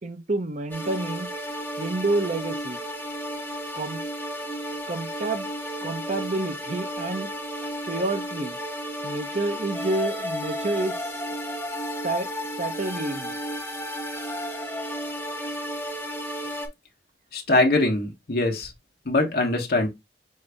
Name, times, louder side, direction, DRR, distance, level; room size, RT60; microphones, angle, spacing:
voice 1, 0.0-1.3 1.8-2.8 3.7-4.0 4.9-5.5 5.8-7.3 7.9-8.6 9.0-11.3 12.0-12.3 12.6-13.4, right 2 dB, 40° right, 0.6 m, -29 dB
sound 1, 0.7-16.7, equal, 10° left, 0.8 m, -33 dB
voice 2, 17.3-18.7 19.0-19.9, left 2 dB, 60° left, 1.0 m, -22 dB
5.5 x 2.6 x 3.3 m
head